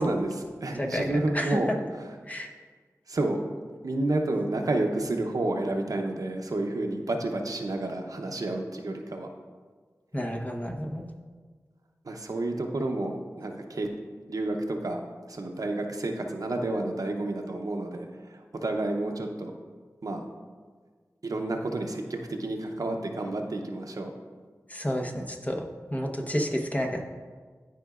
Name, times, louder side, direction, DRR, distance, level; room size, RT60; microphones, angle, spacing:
voice 1, 0.0-2.0 3.1-3.4 3.8-9.3 12.0-13.9 14.3-15.0 15.3-19.5 20.0-20.2 21.2-24.1, right 2 dB, 70° right, 3 dB, 0.7 m, -30 dB
voice 2, 0.8-1.6 2.3-2.5 10.1-11.0 24.7-25.6 25.9-27.1, equal, 25° left, 1 dB, 0.9 m, -30 dB
12.0 x 5.0 x 2.4 m, 1.5 s
wide cardioid pair, 45°, 6 cm